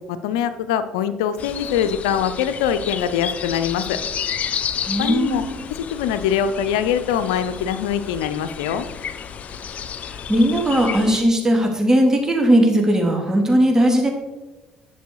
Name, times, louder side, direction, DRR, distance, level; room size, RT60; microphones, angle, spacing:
voice 1, 0.1-4.0 5.0-5.4 5.7-8.9, left 8 dB, 90° left, 11 dB, 0.6 m, -23 dB
sound 1, 1.4-11.2, left 8 dB, 50° left, 0.8 m, -31 dB
voice 2, 4.9-5.6 10.1-14.1, right 1 dB, 15° right, 2 dB, 3.1 m, -18 dB
11.0 x 7.0 x 4.8 m, 1.1 s
supercardioid pair, 70°, 3 cm